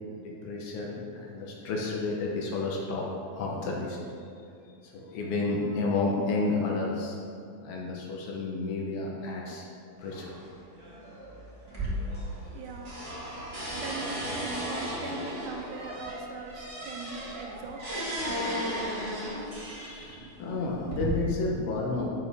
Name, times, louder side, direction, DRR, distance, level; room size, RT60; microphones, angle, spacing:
voice 1, 0.1-4.0 4.8-7.2 7.6-9.6 10.0-10.3 19.8-22.1, left 3 dB, 75° left, -2 dB, 2.7 m, -31 dB
sound 1, 10.0-20.7, equal, 15° right, 1.3 m, -48 dB
sound 2, 11.7-12.6 12.8-19.7 20.4-21.0, equal, 50° right, 0.7 m, -35 dB
voice 2, 12.5-13.2 13.7-18.1 20.1-20.3, right 4 dB, 75° right, 2 dB, 2.0 m, -41 dB
11.0 x 6.9 x 3.5 m, 2.4 s
omnidirectional pair, 4.3 m